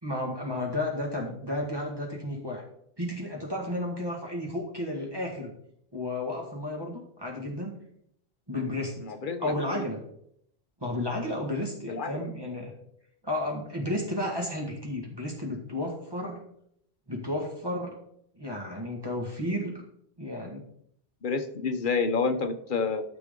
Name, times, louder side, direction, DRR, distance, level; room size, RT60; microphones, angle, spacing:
voice 1, 0.0-2.6 3.0-5.5 5.9-7.7 8.5-9.0 9.4-10.0 10.8-12.7 13.2-16.4 17.1-17.9 18.4-19.8 20.2-20.6, left 1 dB, 20° right, -1 dB, 1.7 m, -32 dB
voice 2, 9.0-9.8 11.9-12.3 21.2-23.0, left 4 dB, 50° left, 8 dB, 1.0 m, -29 dB
13.0 x 6.1 x 3.8 m, 0.71 s
omnidirectional pair, 1.1 m